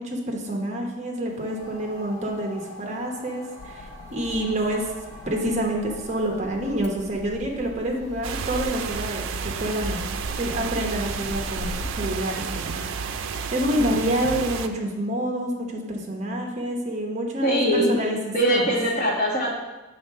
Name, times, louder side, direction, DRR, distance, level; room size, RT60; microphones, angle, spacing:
voice 1, 0.0-4.9 5.2-10.0 10.4-18.2 18.4-18.6, right 1 dB, 35° right, 1 dB, 0.9 m, -28 dB
sound 1, 1.3-8.4, left 1 dB, 55° right, 1.9 m, -46 dB
sound 2, 3.6-11.9, left 3 dB, 70° left, 0.3 m, -41 dB
sound 3, 8.2-14.7, right 5 dB, 80° right, 0.4 m, -31 dB
voice 2, 17.4-18.0 18.3-19.6, equal, 40° left, -3 dB, 1.4 m, -22 dB
5.7 x 3.8 x 5.2 m, 1.1 s
head